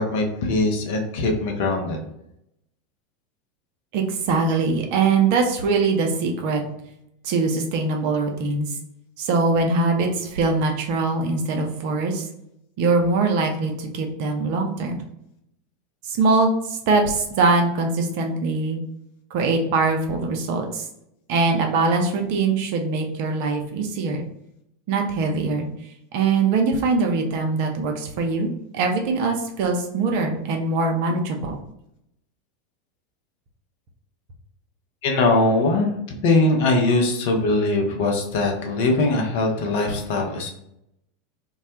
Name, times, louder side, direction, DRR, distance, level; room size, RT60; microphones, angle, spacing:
voice 1, 0.0-2.0 35.0-40.5, left 2 dB, 60° left, 2 dB, 0.6 m, -21 dB
voice 2, 3.9-6.6 7.2-8.8 9.2-12.3 12.8-15.0 16.0-18.8 19.3-20.8 21.3-24.2 24.9-25.7 26.1-31.6, right 3 dB, 60° right, 3 dB, 0.5 m, -22 dB
2.2 x 2.1 x 2.8 m, 0.79 s
hypercardioid pair, 85°, 0 cm